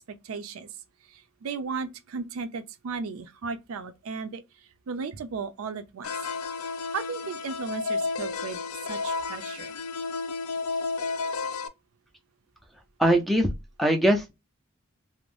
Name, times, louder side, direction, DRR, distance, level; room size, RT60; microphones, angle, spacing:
voice 1, 0.1-0.7 1.1-6.2 6.9-9.8, right 5 dB, 85° right, 0.4 m, -36 dB
sound 1, 6.0-11.7, left 4 dB, 90° left, 0.4 m, -32 dB
voice 2, 13.0-13.5 13.8-14.3, right 1 dB, ahead, 0.4 m, -21 dB
2.5 x 2.0 x 3.1 m
head